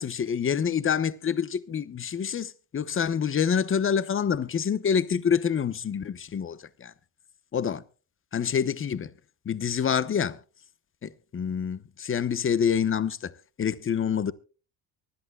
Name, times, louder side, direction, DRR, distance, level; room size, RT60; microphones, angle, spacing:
voice 1, 0.0-6.9 7.5-7.8 8.3-9.1 9.4-10.4 11.0-13.3 13.6-14.3, left 7 dB, 30° left, 1.0 m, -27 dB
24.0 x 11.0 x 2.3 m
supercardioid pair, 90°, 45 cm